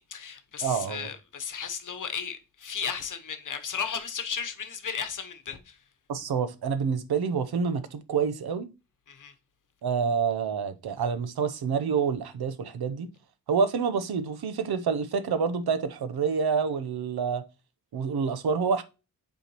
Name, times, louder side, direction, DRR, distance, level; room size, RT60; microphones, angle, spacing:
voice 1, 0.1-5.8 9.1-9.3, left 7 dB, 55° left, 1.0 m, -35 dB
voice 2, 0.6-1.1 6.1-8.7 9.8-13.1 13.5-17.4 17.9-18.8, right 6 dB, 85° right, 0.8 m, -27 dB
8.2 x 4.5 x 3.0 m
wide cardioid pair, 145°, 37 cm